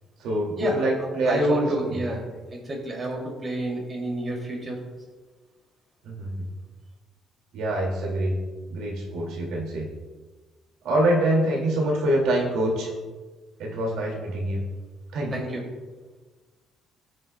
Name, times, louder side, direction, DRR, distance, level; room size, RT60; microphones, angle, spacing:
voice 1, 0.2-2.0 6.0-6.5 7.5-8.3 8.7-9.9 10.8-12.9 13.6-14.6 15.1-15.4, right 1 dB, 90° right, -1 dB, 2.2 m, -25 dB
voice 2, 1.3-2.2 2.5-4.8 15.3-15.6, equal, 25° right, -1 dB, 2.5 m, -28 dB
19.0 x 7.7 x 2.2 m, 1.3 s
cardioid pair, 150°, 0 cm